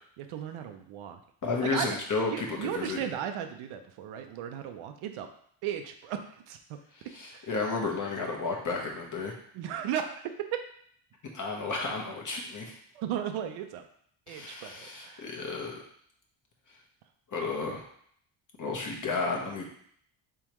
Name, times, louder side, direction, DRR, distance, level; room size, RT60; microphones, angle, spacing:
voice 1, 0.2-1.2 1.6-2.0 2.3-5.3 5.6-6.8 7.3-7.5 9.5-10.2 12.9-13.8 14.3-15.3, right 9 dB, 75° right, 6 dB, 0.6 m, -36 dB
voice 2, 1.4-3.0 6.9-9.4 11.3-12.8 14.3-15.8 17.3-17.8 18.6-19.7, left 3 dB, 40° left, 0 dB, 1.1 m, -32 dB
3.6 x 3.4 x 3.0 m, 0.64 s
cardioid pair, 80°, 50 cm